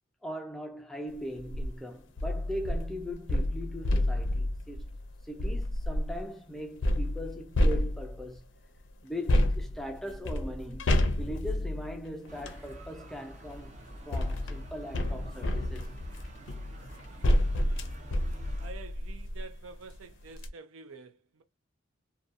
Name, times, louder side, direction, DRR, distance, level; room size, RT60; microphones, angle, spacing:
voice 1, 0.2-4.8 5.2-8.4 9.0-10.9 11.2-13.7 14.0-15.9, equal, ahead, 0.3 m, -40 dB
sound 1, 1.4-1.7 2.2-6.2 6.8-8.4 9.3-12.6 13.6-19.5 19.9-20.0 20.3-20.5, left 1 dB, 60° left, 0.5 m, -29 dB
sound 2, 12.3-18.7, right 1 dB, 35° right, 0.6 m, -48 dB
voice 2, 18.6-21.4, right 4 dB, 85° right, 0.5 m, -48 dB
2.6 x 2.2 x 2.5 m
head